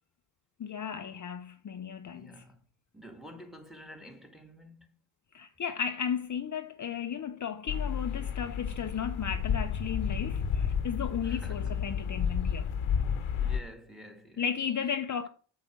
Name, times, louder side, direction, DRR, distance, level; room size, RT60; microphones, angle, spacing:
voice 1, 0.6-2.4 5.3-12.8 14.4-15.3, left 7 dB, 40° left, 0.7 m, -35 dB
voice 2, 2.1-2.6 2.9-5.0 11.2-11.8 13.4-14.4, equal, ahead, 1.8 m, -49 dB
sound 1, 7.7-13.6, left 7 dB, 85° left, 1.1 m, -31 dB
8.0 x 4.8 x 6.1 m
cardioid pair, 75°, 48 cm